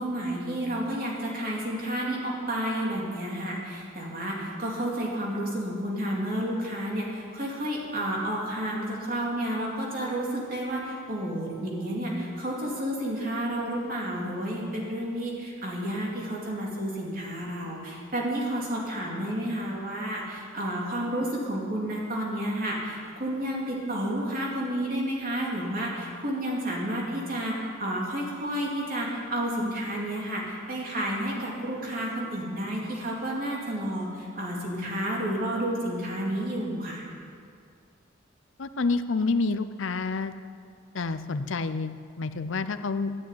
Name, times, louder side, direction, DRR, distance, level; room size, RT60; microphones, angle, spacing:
voice 1, 0.0-37.1, right 1 dB, 45° right, -3 dB, 3.5 m, -31 dB
voice 2, 38.6-40.3 40.9-43.2, left 3 dB, 65° left, 11 dB, 0.6 m, -28 dB
12.5 x 11.0 x 9.6 m, 2.2 s
head